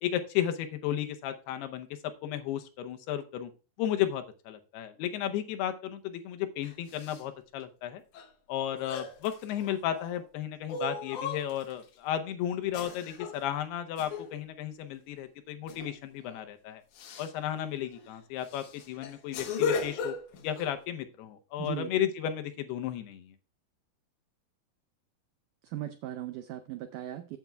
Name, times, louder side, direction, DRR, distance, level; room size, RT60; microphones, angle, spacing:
voice 1, 0.0-3.5 3.8-8.0 8.5-16.8 17.2-20.2 20.4-23.3, left 11 dB, 85° left, 7 dB, 2.9 m, -34 dB
sound 1, 6.6-7.2 8.1-8.3 8.7-10.1 10.7-11.8 12.7-13.4 14.0-14.3 15.7-15.9 16.2-16.4 16.9-17.3 17.9-18.1 18.4-20.7, left 5 dB, 65° left, 2.1 m, -36 dB
voice 2, 21.6-21.9 25.6-27.4, right 12 dB, 85° right, 9 dB, 1.8 m, -38 dB
14.5 x 7.3 x 2.3 m, 0.34 s
omnidirectional pair, 4.5 m